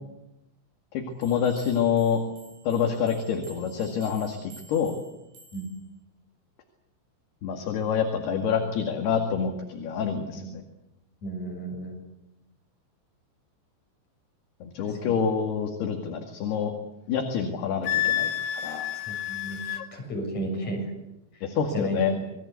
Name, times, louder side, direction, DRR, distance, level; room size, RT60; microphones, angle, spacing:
voice 1, 0.9-2.2 2.7-4.9 7.4-10.6 14.6-16.7 17.1-18.9 21.4-22.1, left 7 dB, 60° left, 4 dB, 3.7 m, -27 dB
sound 1, 1.2-5.9, right 3 dB, 85° right, 9.7 m, -52 dB
voice 2, 11.2-11.9 14.9-15.2 19.1-20.9 21.7-22.0, right 1 dB, 35° left, 2 dB, 8.1 m, -33 dB
Wind instrument woodwind instrument, 17.9-19.9, left 12 dB, 80° left, 4.2 m, -29 dB
27.5 x 21.5 x 8.3 m, 0.91 s
omnidirectional pair, 5.9 m